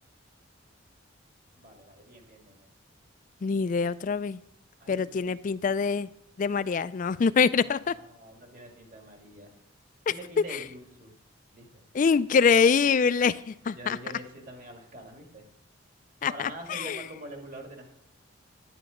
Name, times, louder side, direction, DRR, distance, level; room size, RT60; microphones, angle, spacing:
voice 1, 1.5-2.7 4.8-5.2 7.5-9.6 10.1-11.1 11.5-11.8 13.7-15.5 16.3-17.9, right 1 dB, 45° right, 2 dB, 2.0 m, -45 dB
voice 2, 3.4-4.4 4.9-6.1 6.4-7.9 11.9-14.0 16.2-17.0, left 5 dB, 40° left, 15 dB, 0.3 m, -24 dB
10.0 x 9.6 x 5.0 m, 0.79 s
head